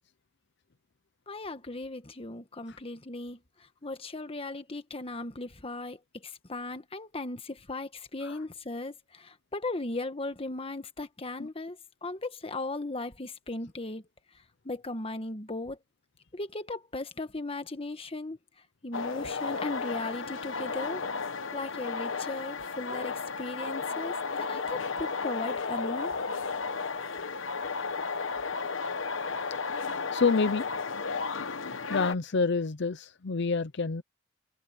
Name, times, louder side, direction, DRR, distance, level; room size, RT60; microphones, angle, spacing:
voice 1, 1.3-14.0 14.6-15.8 16.3-18.4 18.8-21.0 21.5-26.1, left 2 dB, 30° left, 1.4 m, -37 dB
sound 1, 18.9-32.1, left 4 dB, 80° left, 1.1 m, -33 dB
voice 2, 30.1-30.7 31.9-34.0, left 4 dB, 60° left, 0.7 m, -28 dB
head